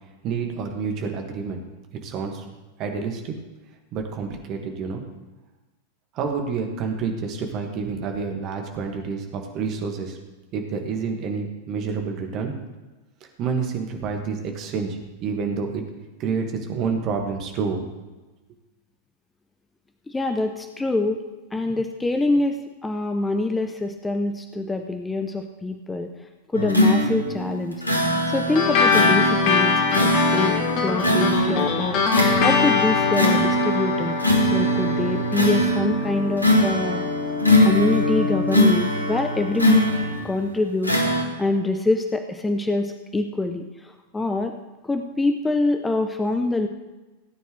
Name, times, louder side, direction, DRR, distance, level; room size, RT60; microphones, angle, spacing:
voice 1, 0.2-1.6 2.0-2.4 2.8-3.3 3.9-5.0 6.1-10.2 10.5-12.5 13.4-15.8 16.2-17.9, right 5 dB, 35° right, 3 dB, 2.0 m, -28 dB
voice 2, 20.1-21.2 21.5-27.8 28.3-37.0 37.6-39.9 40.2-44.5 44.8-46.7, left 2 dB, 10° left, 6 dB, 0.7 m, -25 dB
sound 1, 26.5-40.4 40.8-41.2, left 1 dB, 85° left, 1.7 m, -22 dB
sound 2, 28.6-37.4, left 5 dB, 40° left, 1.6 m, -23 dB
17.5 x 9.2 x 3.4 m, 1.2 s
figure-of-eight pair, 90°, 0 cm